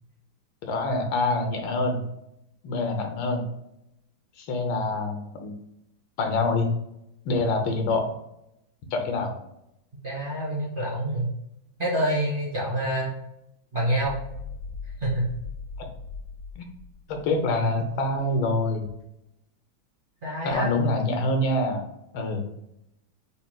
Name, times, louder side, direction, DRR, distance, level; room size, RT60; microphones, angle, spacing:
voice 1, 0.6-2.0 2.6-3.5 4.4-5.5 6.2-6.7 7.2-8.1 8.9-9.3 16.6-16.7 17.1-18.9 20.4-21.8 22.1-22.4, left 2 dB, 80° left, 4 dB, 1.5 m, -25 dB
voice 2, 10.0-11.3 11.8-13.1 13.7-14.2 15.0-15.3 20.2-20.7, right 1 dB, 35° right, -6 dB, 1.0 m, -27 dB
sound 1, 14.0-18.2, left 4 dB, 50° right, 1.6 m, -39 dB
5.2 x 4.2 x 2.2 m, 0.83 s
omnidirectional pair, 2.2 m